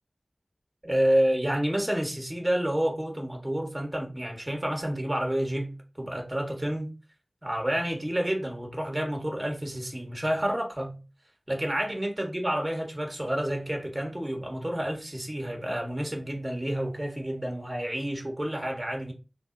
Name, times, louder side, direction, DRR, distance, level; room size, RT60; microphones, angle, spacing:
voice 1, 0.8-6.9 7.4-11.0 11.5-19.1, right 1 dB, 25° right, 1.0 m, -29 dB
3.5 x 2.0 x 3.5 m
wide cardioid pair, 40°, 0 cm